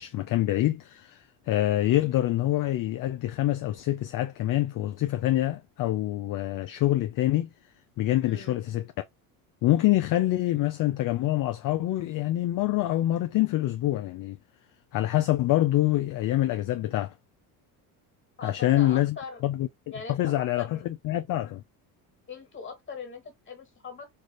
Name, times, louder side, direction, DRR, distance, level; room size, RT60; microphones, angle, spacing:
voice 1, 0.0-7.5 8.0-8.9 9.6-14.4 14.9-17.1 18.4-19.2 19.4-19.7 20.1-21.6, left 14 dB, 50° left, 0.5 m, -26 dB
voice 2, 8.2-8.6 18.4-19.4 19.9-20.8 22.3-24.1, left 4 dB, 25° left, 1.9 m, -41 dB
3.4 x 2.5 x 2.9 m
supercardioid pair, 90°, 43 cm